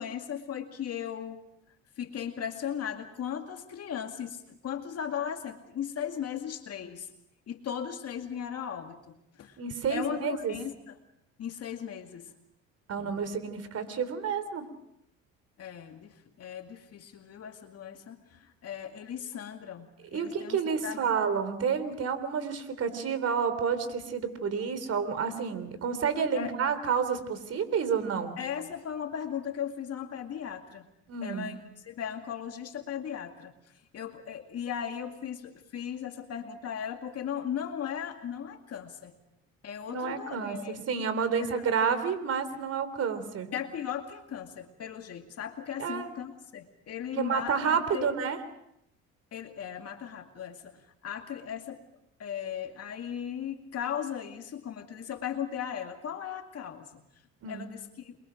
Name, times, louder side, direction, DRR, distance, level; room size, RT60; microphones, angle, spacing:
voice 1, 0.0-1.4 2.0-7.1 7.5-9.6 9.9-10.9 11.4-12.3 13.0-13.2 15.6-19.9 20.1-21.1 26.3-26.5 28.4-30.9 31.2-39.1 39.6-40.8 41.4-41.5 43.5-48.1 49.3-51.8 52.2-57.0 57.5-58.2, left 8 dB, 55° left, 5 dB, 2.2 m, -37 dB
voice 2, 9.6-10.5 12.9-14.6 20.1-28.4 31.1-31.5 39.9-43.5 45.8-46.1 47.2-48.4 57.4-57.7, right 6 dB, 55° right, 12 dB, 3.5 m, -30 dB
28.5 x 22.5 x 5.2 m, 0.78 s
cardioid pair, 90°, 29 cm